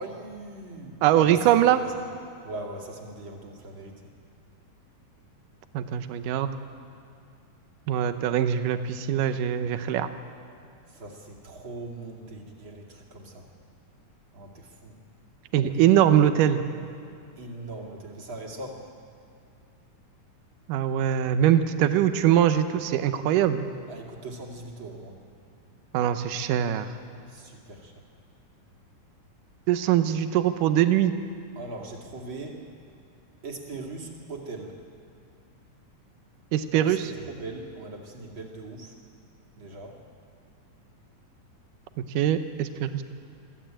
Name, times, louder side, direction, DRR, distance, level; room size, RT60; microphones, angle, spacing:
voice 1, 0.0-1.5 2.4-4.0 10.9-13.5 14.3-14.9 17.4-18.8 23.9-25.1 27.3-27.9 31.6-32.6 33.4-34.8 36.7-38.9 39.6-40.0, right 2 dB, 40° right, 0 dB, 2.9 m, -40 dB
voice 2, 1.0-1.8 5.7-6.5 7.9-10.1 15.5-16.6 20.7-23.7 25.9-26.9 29.7-31.1 36.5-37.1 42.1-43.0, right 10 dB, 85° right, 9 dB, 2.4 m, -22 dB
23.0 x 15.0 x 8.9 m, 2.4 s
omnidirectional pair, 3.7 m